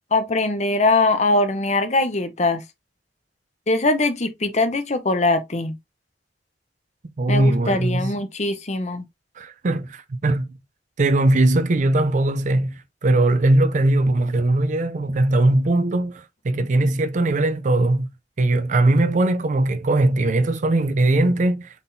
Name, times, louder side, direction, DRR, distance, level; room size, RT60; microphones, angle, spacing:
voice 1, 0.1-2.6 3.7-5.7 7.3-9.0, left 2 dB, 40° left, 0.8 m, -21 dB
voice 2, 7.2-8.1 9.4-10.5 11.0-18.1 18.4-21.7, right 2 dB, 45° right, 0.5 m, -20 dB
4.1 x 3.6 x 2.6 m
head